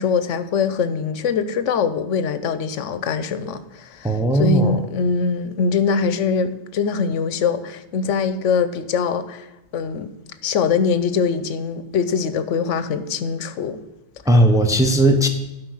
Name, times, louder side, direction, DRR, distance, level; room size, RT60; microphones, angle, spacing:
voice 1, 0.0-9.5 9.7-10.1 10.4-13.8, left 6 dB, 85° left, 12 dB, 1.0 m, -22 dB
voice 2, 4.0-4.8 14.3-15.3, right 1 dB, 5° right, 4 dB, 0.7 m, -16 dB
12.0 x 5.1 x 6.4 m, 0.97 s
omnidirectional pair, 1.2 m